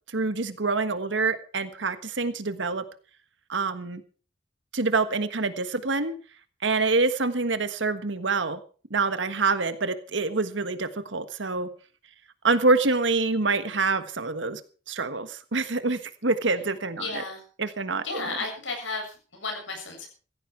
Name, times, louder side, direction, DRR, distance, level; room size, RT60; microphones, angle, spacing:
voice 1, 0.1-2.8 3.5-4.0 4.7-6.1 6.6-8.6 8.9-11.7 12.4-14.6 14.9-17.2 17.6-18.2, right 3 dB, 80° right, 11 dB, 1.5 m, -26 dB
voice 2, 17.0-17.4 18.0-20.1, left 3 dB, 90° left, 2 dB, 7.4 m, -33 dB
16.0 x 14.5 x 4.6 m, 0.39 s
head